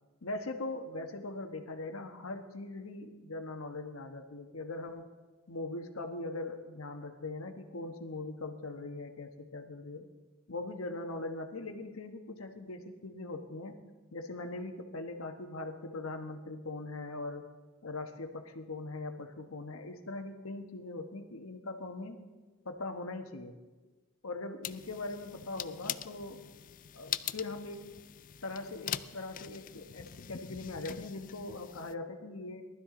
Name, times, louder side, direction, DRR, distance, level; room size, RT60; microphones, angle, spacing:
voice 1, 0.2-5.1 5.5-10.1 10.5-13.8 14.1-17.5 17.8-22.2 22.6-23.6 24.2-26.4 26.9-27.9 28.4-32.6, left 2 dB, 85° left, 6 dB, 1.2 m, -41 dB
sound 1, 24.6-31.9, left 10 dB, 40° left, 0.4 m, -42 dB
19.0 x 12.5 x 3.8 m, 1.3 s
head